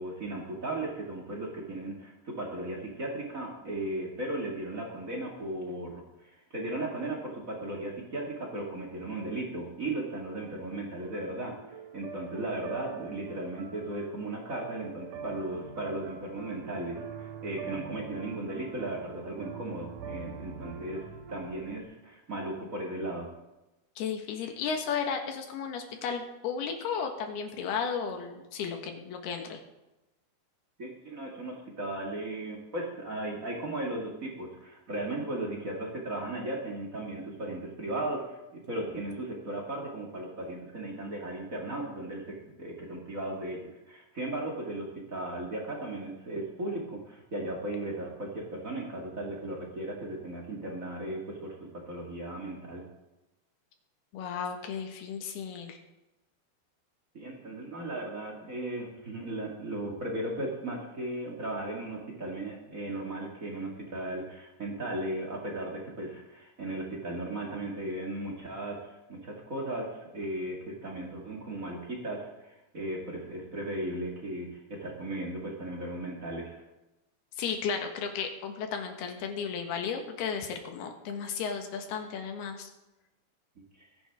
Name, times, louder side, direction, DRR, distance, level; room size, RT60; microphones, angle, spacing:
voice 1, 0.0-23.3 30.8-43.6 43.9-52.8 57.1-68.8 69.1-76.6 83.8-83.9, right 1 dB, 35° right, -1 dB, 1.3 m, -36 dB
sound 1, 11.0-21.8, right 5 dB, 65° right, 2.2 m, -44 dB
voice 2, 24.0-29.6 54.1-55.8 77.4-82.7, left 6 dB, 70° left, 4 dB, 3.4 m, -34 dB
21.5 x 10.5 x 3.6 m, 0.98 s
omnidirectional pair, 4.8 m